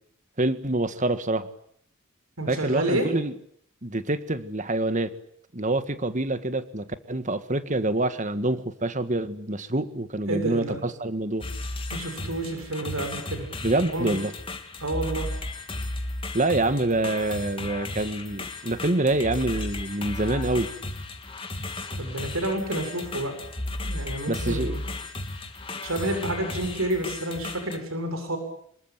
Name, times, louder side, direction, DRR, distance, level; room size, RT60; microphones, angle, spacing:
voice 1, 0.4-1.5 2.5-3.3 3.8-5.1 5.5-11.5 13.6-14.3 16.3-20.7 24.3-24.8, right 2 dB, 35° right, 11 dB, 1.7 m, -26 dB
voice 2, 2.4-3.1 10.3-10.8 11.9-13.5 13.9-14.2 14.8-15.3 22.0-23.3 23.8-24.8 25.8-28.4, right 1 dB, 75° right, 6 dB, 7.3 m, -29 dB
sound 1, 11.4-27.8, left 2 dB, 25° left, 3.0 m, -35 dB
26.5 x 23.0 x 9.0 m, 0.69 s
head